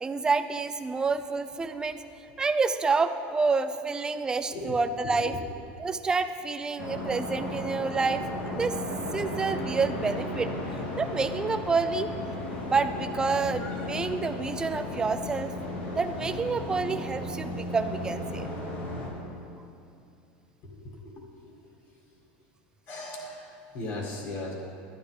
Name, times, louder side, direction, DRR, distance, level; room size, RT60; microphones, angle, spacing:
voice 1, 0.0-2.0 2.4-5.4 5.8-8.8 9.1-10.5 11.0-12.1 12.7-15.5 16.0-18.5, right 4 dB, 15° right, 9 dB, 0.4 m, -28 dB
sound 1, 6.8-19.1, left 1 dB, 85° left, 2.3 m, -35 dB
voice 2, 20.8-21.6 22.9-24.5, left 2 dB, 50° left, -2 dB, 1.9 m, -38 dB
12.0 x 9.4 x 3.4 m, 2.6 s
supercardioid pair, 135°, 5 cm